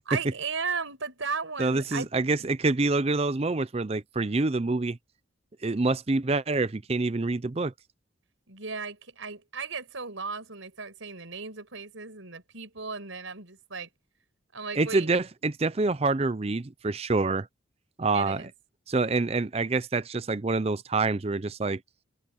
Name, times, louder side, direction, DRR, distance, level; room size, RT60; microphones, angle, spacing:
voice 1, 0.1-2.1 8.5-13.9 14.5-15.1 18.1-18.5, right 5 dB, 90° right, 5.8 m, -35 dB
voice 2, 1.6-5.0 5.6-7.7 14.8-17.5 18.0-18.5 18.9-21.8, right 3 dB, 30° right, 0.5 m, -26 dB
head